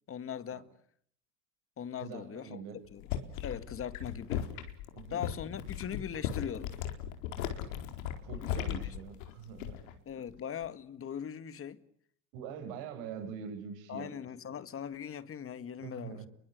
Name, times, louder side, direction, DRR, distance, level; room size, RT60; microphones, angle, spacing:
voice 1, 0.1-0.7 1.8-2.6 2.9-3.2 3.4-4.5 5.1-6.8 8.4-8.8 10.1-11.8 13.9-16.2, left 8 dB, 35° left, 2.0 m, -40 dB
voice 2, 2.0-2.8 4.9-5.2 8.2-9.8 12.3-14.1 15.8-16.3, right 7 dB, 70° right, 8.0 m, -44 dB
sound 1, 2.8-10.0 10.3-10.7, left 10 dB, 80° left, 4.5 m, -37 dB
30.0 x 23.5 x 8.3 m
supercardioid pair, 100°, 39 cm